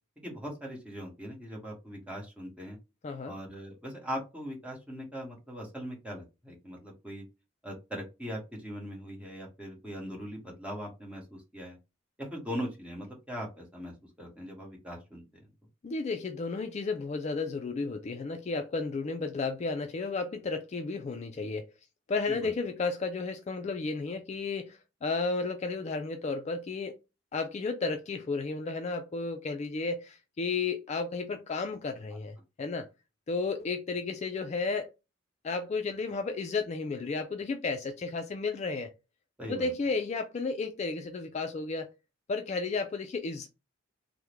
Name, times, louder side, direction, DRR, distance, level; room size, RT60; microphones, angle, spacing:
voice 1, 0.2-2.8 3.2-7.2 7.6-11.8 12.2-15.4 22.3-22.5 39.4-39.7, equal, 5° right, 1.1 m, -40 dB
voice 2, 3.0-3.3 15.8-21.7 22.1-27.0 27.3-32.9 33.3-34.9 35.4-38.9 39.5-41.9 42.3-43.5, left 4 dB, 35° left, 0.3 m, -33 dB
3.5 x 2.1 x 3.0 m
head